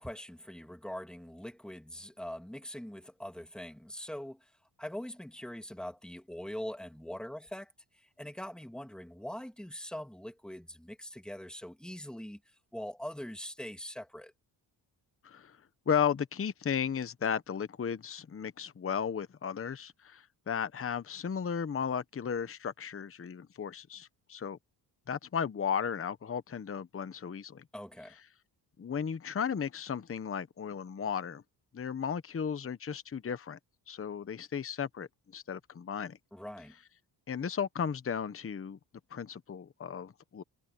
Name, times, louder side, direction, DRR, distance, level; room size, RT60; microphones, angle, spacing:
voice 1, 0.0-4.5 4.8-12.4 12.7-14.3 27.7-28.2 36.3-36.7, equal, ahead, 2.3 m, -43 dB
voice 2, 15.2-15.6 15.9-24.6 25.1-27.6 28.8-31.4 31.7-33.6 33.9-35.1 35.3-36.2 37.3-38.8 39.1-40.4, left 7 dB, 30° left, 0.9 m, -35 dB
cardioid pair, 90°, 42 cm